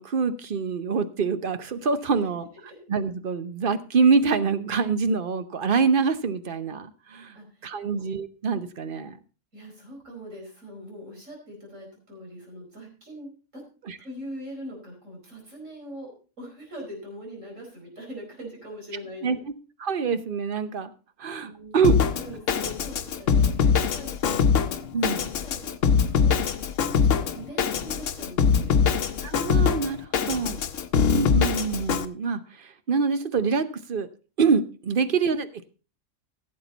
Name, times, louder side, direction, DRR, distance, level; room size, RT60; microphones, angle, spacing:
voice 1, 0.0-2.5 2.9-7.3 7.6-9.2 13.9-14.0 19.2-19.4 19.8-20.9 21.2-21.9 24.9-25.2 29.2-30.6 31.1-34.1 34.4-35.7, right 5 dB, 45° right, 11 dB, 0.9 m, -25 dB
voice 2, 7.3-8.0 9.5-13.6 14.0-19.4 21.4-24.7 25.0-26.4 27.0-29.1 35.0-35.1, equal, 75° right, 0 dB, 5.0 m, -42 dB
Drum kit, 21.8-32.1, left 6 dB, 75° left, 1.2 m, -23 dB
16.0 x 7.7 x 4.0 m, 0.35 s
omnidirectional pair, 1.3 m